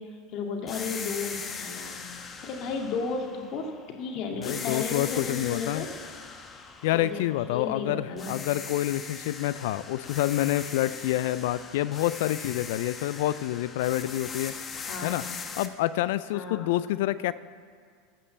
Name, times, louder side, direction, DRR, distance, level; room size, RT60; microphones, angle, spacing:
voice 1, 0.0-3.7 4.0-5.9 6.9-7.2 7.5-8.4 14.9-15.2 16.3-16.8, left 4 dB, 50° left, 1 dB, 2.1 m, -34 dB
sound 1, 0.7-4.0 4.4-7.8 8.2-15.7, left 5 dB, 25° left, 1.2 m, -40 dB
voice 2, 4.4-5.8 6.8-14.5 15.0-15.2 15.6-17.3, left 14 dB, 70° left, 16 dB, 0.4 m, -28 dB
14.0 x 5.5 x 7.4 m, 2.1 s
hypercardioid pair, 90°, 0 cm